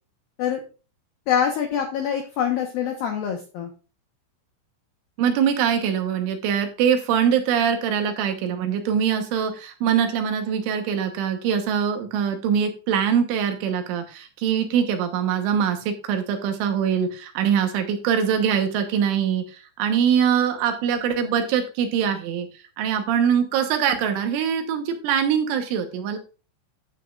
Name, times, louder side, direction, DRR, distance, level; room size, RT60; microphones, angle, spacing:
voice 1, 1.3-3.7, left 8 dB, 80° left, 3 dB, 2.1 m, -25 dB
voice 2, 5.2-22.5 22.8-26.2, right 8 dB, 75° right, 6 dB, 3.4 m, -23 dB
12.5 x 8.4 x 2.4 m, 0.34 s
omnidirectional pair, 5.8 m